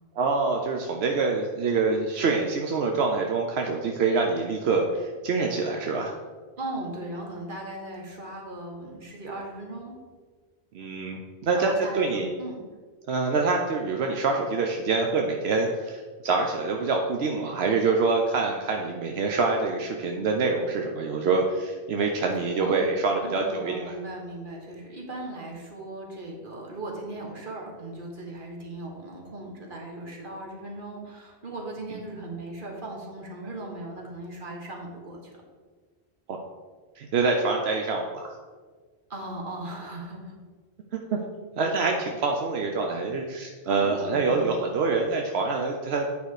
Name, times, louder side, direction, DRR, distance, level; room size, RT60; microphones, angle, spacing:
voice 1, 0.2-6.1 10.7-12.3 13.1-23.9 36.3-36.4 37.0-38.3 41.1-41.2 41.6-46.1, right 4 dB, 80° right, 2 dB, 1.0 m, -26 dB
voice 2, 6.6-9.9 11.5-12.6 22.4-22.8 23.2-35.4 39.1-40.4 43.6-44.7, right 2 dB, 55° right, 0 dB, 1.7 m, -38 dB
9.0 x 5.1 x 4.8 m, 1.5 s
omnidirectional pair, 1.1 m